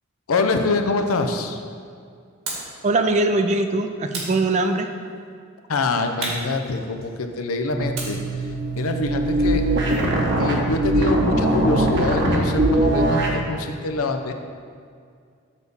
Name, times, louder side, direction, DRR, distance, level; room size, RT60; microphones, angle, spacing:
voice 1, 0.3-1.6 5.7-8.2 8.8-9.6 10.4-14.3, left 3 dB, 85° left, 6 dB, 0.6 m, -25 dB
sound 1, 2.5-2.8 4.1-5.0 6.2-7.3 7.9-10.2, right 2 dB, 75° right, 1.9 m, -35 dB
voice 2, 2.8-4.9, right 2 dB, 35° right, 7 dB, 0.4 m, -21 dB
sound 2, 7.7-13.4, right 1 dB, 55° right, 1.0 m, -21 dB
7.3 x 4.1 x 6.8 m, 2.2 s
head